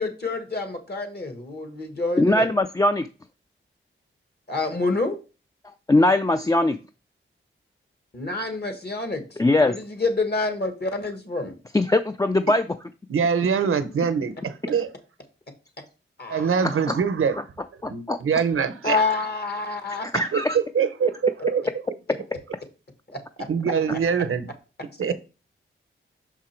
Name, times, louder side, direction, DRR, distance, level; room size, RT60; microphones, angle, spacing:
voice 1, 0.0-2.5 4.5-5.2 8.1-11.5 16.2-16.5 18.8-20.1 23.1-23.2, left 3 dB, 50° left, 1.5 m, -27 dB
voice 2, 2.2-3.1 5.9-6.8 9.4-9.7 11.7-12.9 16.6-16.9 17.8-18.2 20.1-20.6, left 2 dB, 15° left, 0.3 m, -21 dB
voice 3, 13.1-14.9 16.3-17.4 17.9-19.0 20.3-21.6 23.5-24.5 25.0-25.1, right 6 dB, 80° right, 0.7 m, -23 dB
5.9 x 4.7 x 4.4 m
wide cardioid pair, 75°, 21 cm